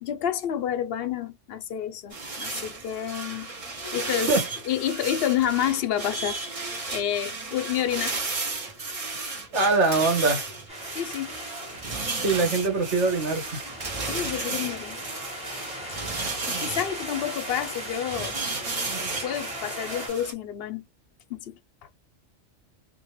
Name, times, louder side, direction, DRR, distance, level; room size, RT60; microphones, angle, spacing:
voice 1, 0.0-3.5 3.9-4.3 4.7-8.2 10.9-11.3 14.1-15.0 16.5-18.4 19.2-20.8 21.3-21.6, left 10 dB, 65° left, 0.7 m, -29 dB
sound 1, 2.1-20.3, right 3 dB, 35° right, 0.7 m, -34 dB
voice 2, 9.5-10.4 12.2-13.4, right 3 dB, 75° right, 1.6 m, -22 dB
sound 2, 10.7-20.1, equal, 5° right, 1.2 m, -39 dB
2.5 x 2.3 x 3.0 m
omnidirectional pair, 1.2 m